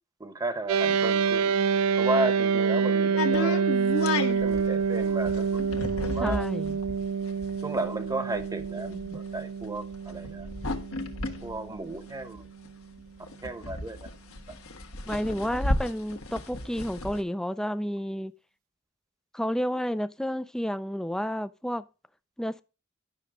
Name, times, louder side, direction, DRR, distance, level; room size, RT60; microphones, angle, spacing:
voice 1, 0.2-1.6 2.0-3.6 4.1-5.6 6.1-6.5 7.6-10.5 11.4-12.5 13.4-14.1, right 2 dB, 15° right, 0.9 m, -33 dB
sound 1, 0.7-12.2, right 6 dB, 75° right, 0.4 m, -27 dB
sound 2, 3.2-12.7 13.0-13.1 13.3-17.2, left 2 dB, 70° left, 1.3 m, -33 dB
voice 2, 6.2-6.8 8.9-9.2 15.1-18.3 19.3-21.9 22.4-22.6, equal, 5° left, 0.4 m, -31 dB
11.5 x 6.4 x 3.6 m
head